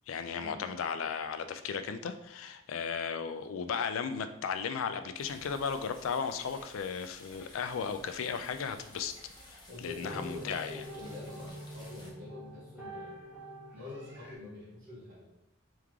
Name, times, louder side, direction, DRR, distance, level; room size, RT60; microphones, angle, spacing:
voice 1, 0.1-9.1 9.5-10.8, left 6 dB, 80° left, 9 dB, 0.4 m, -35 dB
sound 1, 5.2-12.1, left 1 dB, 20° left, 0.7 m, -54 dB
sound 2, 9.3-14.4, right 1 dB, 10° right, 0.8 m, -47 dB
voice 2, 9.7-13.2 13.7-15.2, left 2 dB, 40° right, -10 dB, 1.1 m, -45 dB
3.5 x 3.2 x 3.5 m, 0.87 s
head